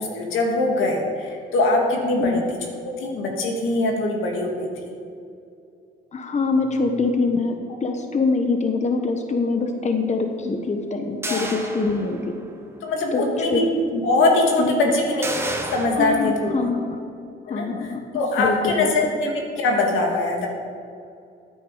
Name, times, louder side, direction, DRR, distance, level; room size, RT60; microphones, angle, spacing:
voice 1, 0.0-2.4 2.8-4.9 11.2-11.5 12.8-13.6 13.9-16.5 17.5-17.7 18.1-20.5, left 2 dB, 85° left, 1 dB, 2.3 m, -22 dB
voice 2, 6.1-12.2 13.1-13.2 13.5-13.6 14.6-14.8 16.0-17.0 17.5-18.0 18.4-18.9, left 3 dB, 35° left, 5 dB, 1.2 m, -24 dB
sound 1, 11.2-12.5 12.9-13.0 15.2-15.9, right 2 dB, 10° right, 1.4 m, -31 dB
14.5 x 9.3 x 5.0 m, 2.5 s
cardioid pair, 90°, 20 cm